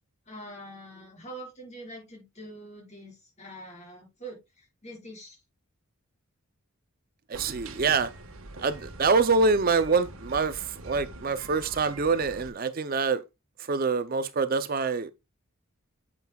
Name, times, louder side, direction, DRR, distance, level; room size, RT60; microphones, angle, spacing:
voice 1, 0.3-5.4, right 1 dB, 30° left, 5.3 m, -44 dB
voice 2, 7.3-8.1 8.6-13.2 13.6-15.1, right 4 dB, 40° right, 0.5 m, -25 dB
sound 1, 7.3-12.5, right 2 dB, 65° right, 1.4 m, -44 dB
9.5 x 7.5 x 2.3 m
head